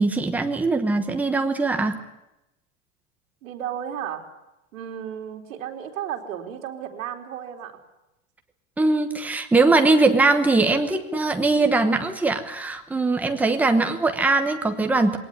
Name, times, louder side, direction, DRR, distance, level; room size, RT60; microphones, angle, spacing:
voice 1, 0.0-2.0 8.8-15.2, right 3 dB, 5° right, 5 dB, 1.0 m, -21 dB
voice 2, 3.4-4.3 4.7-7.8, right 9 dB, 80° right, 4 dB, 3.7 m, -33 dB
21.0 x 18.5 x 9.8 m, 0.93 s
supercardioid pair, 180°, 39 cm